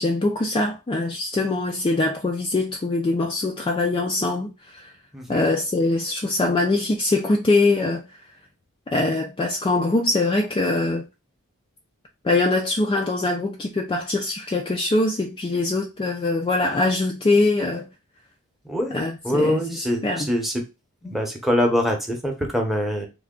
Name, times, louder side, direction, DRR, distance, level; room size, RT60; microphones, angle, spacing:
voice 1, 0.0-4.9 5.3-8.1 8.9-11.0 12.2-17.9 18.9-19.6 20.0-20.3, left 2 dB, 20° left, 0.4 m, -23 dB
voice 2, 5.1-5.5 18.7-20.6 21.0-23.1, equal, ahead, 0.7 m, -24 dB
3.3 x 2.2 x 3.6 m
head